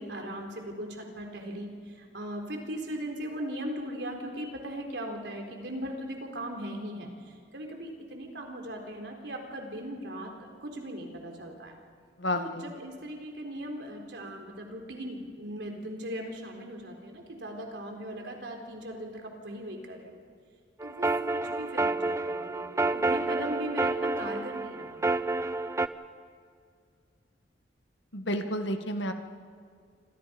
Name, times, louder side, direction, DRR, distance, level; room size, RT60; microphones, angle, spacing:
voice 1, 0.0-7.1 7.5-11.8 12.4-20.2 20.8-25.0, equal, 70° right, 2 dB, 4.1 m, -38 dB
voice 2, 12.2-12.7 28.1-29.1, equal, 80° left, 6 dB, 1.9 m, -31 dB
sound 1, 20.8-25.9, right 2 dB, 15° right, 0.6 m, -29 dB
29.0 x 26.0 x 5.3 m, 2.1 s
head